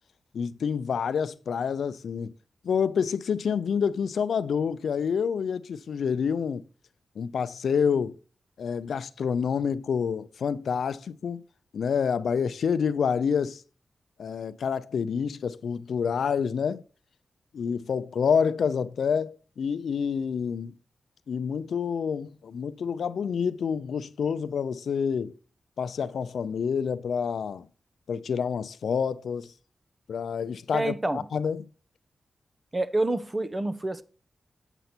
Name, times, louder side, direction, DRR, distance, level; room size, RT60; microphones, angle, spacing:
voice 1, 0.3-2.3 2.6-6.6 7.2-8.2 8.6-11.4 11.7-13.6 14.2-16.8 17.5-20.8 21.3-25.4 25.8-27.7 28.1-29.5 30.1-31.7, left 6 dB, 85° left, 0.4 m, -28 dB
voice 2, 30.7-31.2 32.7-34.0, right 2 dB, 25° right, 0.7 m, -27 dB
8.0 x 6.8 x 4.3 m
wide cardioid pair, 85°, 0 cm